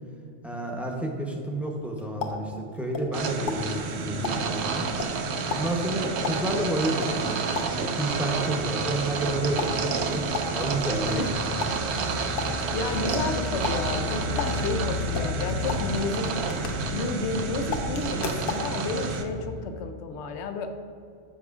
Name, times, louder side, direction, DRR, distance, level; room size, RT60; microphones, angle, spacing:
voice 1, 0.4-4.9 5.5-11.5, right 1 dB, ahead, -1 dB, 0.7 m, -30 dB
sound 1, 1.7-3.2 3.5-8.0 9.6-17.4 17.7-18.7, left 4 dB, 60° left, 0.8 m, -36 dB
sound 2, 3.1-19.2, right 3 dB, 85° right, 0.9 m, -29 dB
sound 3, 10.8-17.9, equal, 30° left, 0.4 m, -42 dB
voice 2, 12.7-16.3 16.9-20.7, left 4 dB, 85° left, 7 dB, 0.9 m, -31 dB
13.0 x 4.9 x 2.4 m, 2.5 s
omnidirectional pair, 1.1 m